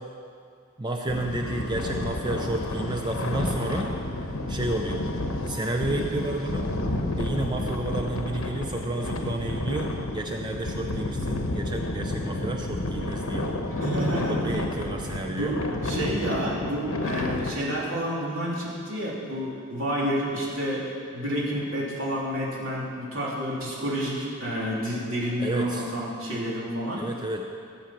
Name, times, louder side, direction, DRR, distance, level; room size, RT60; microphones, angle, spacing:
voice 1, 0.8-3.9 4.2-5.0 5.4-6.7 7.2-13.5 14.1-15.6 25.4-25.9 27.0-27.4, right 1 dB, 20° right, 2 dB, 0.5 m, -31 dB
sound 1, 1.1-17.5, left 1 dB, 70° left, 1.1 m, -30 dB
voice 2, 13.8-14.6 15.3-20.9 21.1-27.0, equal, 65° right, -5 dB, 3.2 m, -29 dB
16.0 x 7.1 x 6.0 m, 2.3 s
head